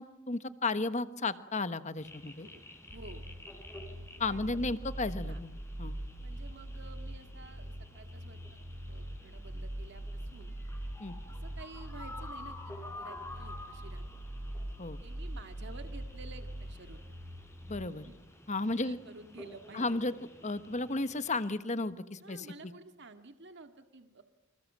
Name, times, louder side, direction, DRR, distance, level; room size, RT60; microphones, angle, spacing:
voice 1, 0.0-2.5 4.2-5.5 5.8-6.0 11.0-11.1 14.8-15.0 17.7-18.1 18.5-19.0 19.7-20.1 20.4-22.7, left 3 dB, 35° left, 12 dB, 1.2 m, -33 dB
sound 1, 2.0-21.5, left 2 dB, 15° left, 4.0 m, -51 dB
voice 2, 2.3-3.2 4.2-4.7 5.3-5.4 6.2-8.6 8.9-10.5 11.3-14.0 15.0-17.2 17.9-18.2 18.6-20.0 22.2-24.2, right 3 dB, 55° right, 7 dB, 2.0 m, -52 dB
sound 2, 2.9-17.9, right 1 dB, 40° right, 3.4 m, -42 dB
29.5 x 26.0 x 7.5 m, 0.89 s
head